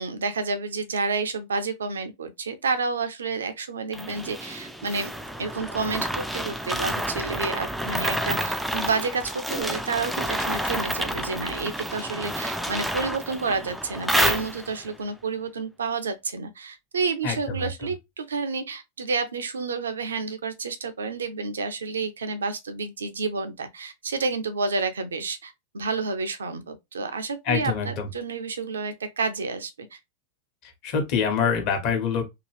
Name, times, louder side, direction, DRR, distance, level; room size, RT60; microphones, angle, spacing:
voice 1, 0.0-5.1 5.4-30.0, right 4 dB, 70° right, 0.5 m, -30 dB
sound 1, 3.9-14.9, equal, ahead, 0.3 m, -29 dB
voice 2, 17.2-17.7 27.5-28.1 30.8-32.2, left 6 dB, 40° left, 1.1 m, -25 dB
2.8 x 2.3 x 3.1 m
figure-of-eight pair, 90°, 0 cm